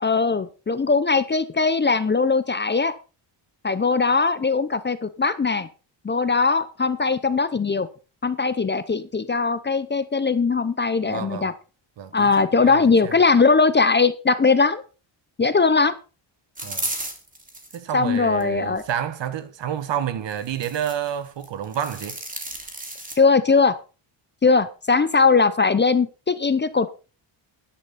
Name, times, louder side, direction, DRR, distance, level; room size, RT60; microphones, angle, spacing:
voice 1, 0.0-2.9 3.6-5.7 6.0-7.9 8.2-11.5 12.1-14.8 15.4-15.9 17.9-18.8 23.2-23.8 24.4-26.9, left 4 dB, 20° left, 0.7 m, -20 dB
voice 2, 11.1-11.5 12.0-13.2 16.6-16.8 17.7-22.2, right 9 dB, 60° right, 1.5 m, -29 dB
sound 1, 16.6-17.8 18.4-19.0 20.3-21.1 21.4-23.1, right 2 dB, 15° right, 2.9 m, -33 dB
12.0 x 10.0 x 4.2 m
cardioid pair, 130°, 49 cm